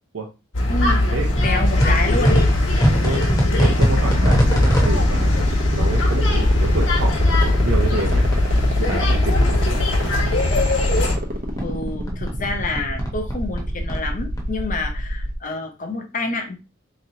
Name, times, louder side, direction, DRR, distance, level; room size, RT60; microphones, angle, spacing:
sound 1, 0.5-11.1, left 1 dB, 70° left, 1.3 m, -19 dB
voice 1, 0.7-1.2 1.4-2.4 11.6-16.6, left 3 dB, 45° left, 4 dB, 0.8 m, -28 dB
sound 2, 1.4-8.6 8.9-11.2 11.5-14.4, equal, 20° left, 1.0 m, -24 dB
sound 3, 1.6-15.4, equal, 45° right, 0.8 m, -29 dB
voice 2, 3.6-8.3 8.8-9.8, right 3 dB, 85° right, -1 dB, 0.7 m, -29 dB
3.8 x 3.0 x 2.8 m, 0.29 s
head